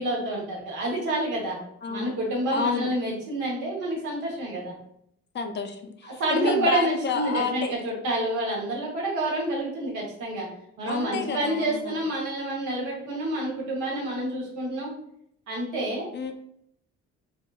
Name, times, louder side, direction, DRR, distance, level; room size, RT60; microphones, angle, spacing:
voice 1, 0.0-1.6 1.9-4.7 6.0-10.5 10.8-14.9 15.5-16.1, right 1 dB, 85° right, -2 dB, 1.1 m, -28 dB
voice 2, 1.8-2.1 2.5-2.9 5.3-7.7 10.9-11.9 16.1-16.4, left 5 dB, 40° left, 6 dB, 0.4 m, -30 dB
3.6 x 2.0 x 2.3 m, 0.73 s
cardioid pair, 90°, 30 cm